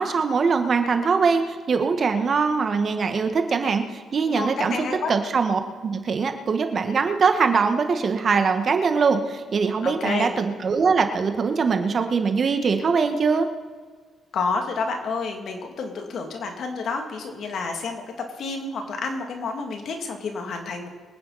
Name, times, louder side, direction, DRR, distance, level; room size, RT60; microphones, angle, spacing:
voice 1, 0.0-13.5, right 5 dB, 45° right, 7 dB, 1.5 m, -22 dB
voice 2, 4.3-5.2 9.8-10.3 14.3-20.9, left 4 dB, 65° left, 3 dB, 2.6 m, -29 dB
24.0 x 9.5 x 4.2 m, 1.5 s
cardioid pair, 90°, 0 cm